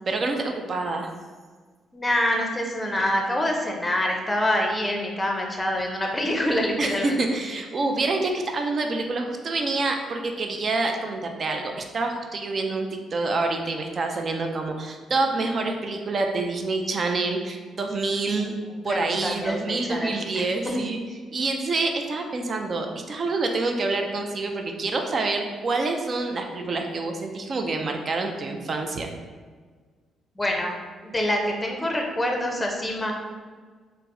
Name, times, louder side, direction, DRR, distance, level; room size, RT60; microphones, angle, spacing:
voice 1, 0.1-1.1 6.8-18.5 18.8-21.0 21.3-29.1, right 3 dB, 45° right, 4 dB, 0.4 m, -27 dB
voice 2, 1.9-7.2 18.9-20.8 30.4-30.7 31.0-33.1, left 1 dB, 15° left, 1 dB, 0.5 m, -26 dB
4.3 x 2.0 x 2.6 m, 1.5 s
cardioid pair, 90°, 0 cm